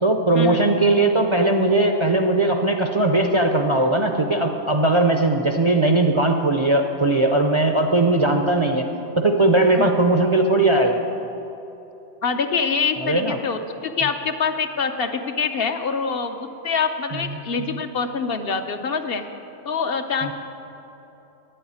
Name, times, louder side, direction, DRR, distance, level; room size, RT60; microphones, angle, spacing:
voice 1, 0.0-8.8 9.2-11.0 13.0-13.4 17.1-17.8 20.2-20.3, right 2 dB, 35° right, 3 dB, 0.5 m, -19 dB
voice 2, 12.2-19.2 19.7-20.3, left 5 dB, 60° left, 6 dB, 0.9 m, -25 dB
9.5 x 7.8 x 9.4 m, 3.0 s
omnidirectional pair, 1.2 m